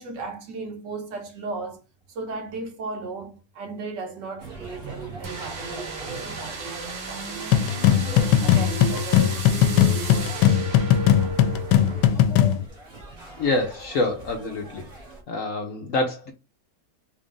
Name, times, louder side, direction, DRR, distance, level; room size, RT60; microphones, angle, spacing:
voice 1, 0.0-1.8 2.1-7.7 8.0-11.3, right 3 dB, 75° right, 1.6 m, -36 dB
sound 1, 4.4-15.2, right 1 dB, 35° right, 1.5 m, -43 dB
sound 2, 5.2-12.1, right 4 dB, 90° right, 1.9 m, -34 dB
sound 3, 7.5-12.6, left 10 dB, 80° left, 1.2 m, -19 dB
voice 2, 13.4-14.8 15.3-16.3, left 2 dB, 60° left, 0.9 m, -26 dB
4.2 x 2.5 x 3.7 m
omnidirectional pair, 1.9 m